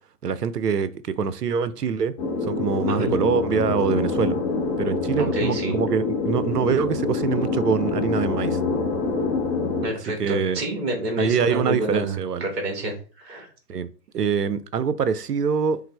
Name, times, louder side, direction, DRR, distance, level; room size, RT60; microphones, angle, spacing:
voice 1, 0.2-0.9 1.2-2.1 2.4-4.4 4.8-8.6 10.2-10.6 11.2-12.4 13.7-13.9 14.1-15.8, right 6 dB, 75° right, 15 dB, 0.6 m, -24 dB
sound 1, 2.2-9.9, left 3 dB, 20° left, 0.8 m, -26 dB
voice 2, 5.2-5.7 9.8-13.5, right 1 dB, 40° right, 3 dB, 1.1 m, -28 dB
5.5 x 2.0 x 3.2 m, 0.39 s
figure-of-eight pair, 120°, 47 cm